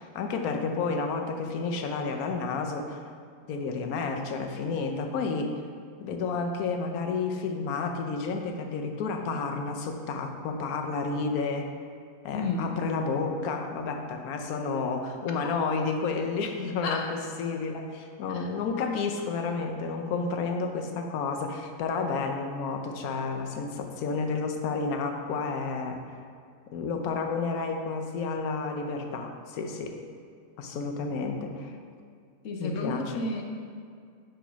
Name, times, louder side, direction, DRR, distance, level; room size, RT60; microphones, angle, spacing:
voice 1, 0.0-3.0 3.5-5.5 6.0-11.7 12.2-26.0 26.7-30.0 30.6-31.8 32.6-33.1, left 4 dB, 90° left, 4 dB, 1.2 m, -31 dB
voice 2, 12.3-12.7 16.8-17.1 18.3-18.5 32.4-33.4, left 3 dB, 65° left, 1 dB, 1.0 m, -32 dB
5.1 x 4.9 x 5.6 m, 2.3 s
omnidirectional pair, 1.5 m